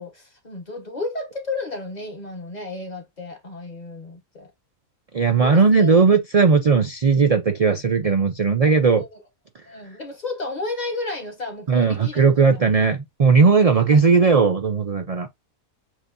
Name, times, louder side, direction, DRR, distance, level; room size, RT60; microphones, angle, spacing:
voice 1, 0.0-4.5 5.4-5.9 8.0-8.2 8.6-9.2 9.6-12.2 12.5-12.6 13.6-14.0, left 3 dB, 30° left, 1.2 m, -33 dB
voice 2, 5.1-9.0 11.7-15.3, right 5 dB, 60° right, 0.4 m, -17 dB
7.4 x 2.6 x 2.5 m
omnidirectional pair, 1.5 m